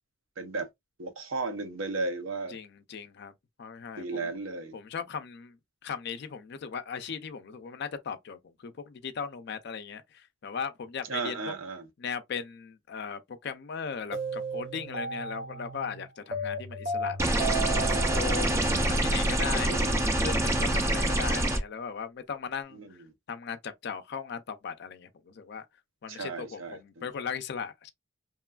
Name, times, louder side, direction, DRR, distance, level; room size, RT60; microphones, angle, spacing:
voice 1, 0.4-0.7 1.0-2.6 4.0-4.7 11.1-11.9 19.6-20.0 22.7-22.9 26.1-27.0, right 3 dB, 75° right, 0.6 m, -35 dB
voice 2, 2.5-3.3 3.6-4.3 4.7-5.6 5.8-11.5 12.0-17.3 17.7-18.5 18.9-22.8 23.3-25.6 26.0-27.9, left 6 dB, 55° left, 0.4 m, -38 dB
sound 1, 14.1-20.3, right 2 dB, 35° right, 0.7 m, -35 dB
sound 2, 17.2-21.6, right 1 dB, 15° right, 0.3 m, -26 dB
3.0 x 2.2 x 2.3 m
head